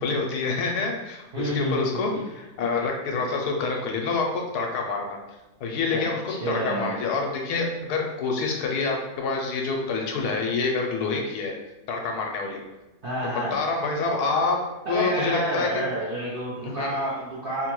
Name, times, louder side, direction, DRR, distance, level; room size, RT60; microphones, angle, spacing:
voice 1, 0.0-5.2 5.6-6.2 6.5-11.5 11.9-12.6 13.2-14.6 14.9-15.8 16.6-17.0, left 4 dB, 75° left, 1 dB, 1.1 m, -27 dB
voice 2, 1.3-1.8 2.1-2.2 5.9-7.0 13.0-13.6 14.9-17.7, right 1 dB, 55° right, -8 dB, 0.6 m, -29 dB
3.0 x 2.2 x 3.0 m, 1.0 s
omnidirectional pair, 1.7 m